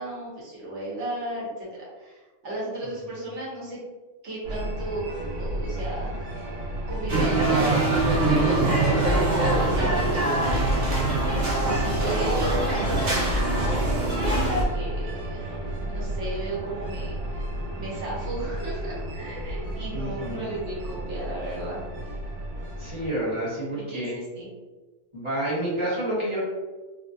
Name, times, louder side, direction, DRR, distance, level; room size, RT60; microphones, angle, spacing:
voice 1, 0.0-3.8 4.2-5.0 5.3-6.4 6.9-21.8 23.7-24.5, right 2 dB, 60° right, -5 dB, 1.3 m, -35 dB
sound 1, 4.4-23.1, right 1 dB, 85° right, 1.3 m, -33 dB
sound 2, 7.1-14.6, right 2 dB, 40° right, 0.7 m, -23 dB
voice 2, 19.9-20.5 22.8-24.1 25.1-26.4, right 1 dB, 25° right, -9 dB, 1.3 m, -29 dB
3.5 x 2.3 x 2.7 m, 1.2 s
omnidirectional pair, 1.4 m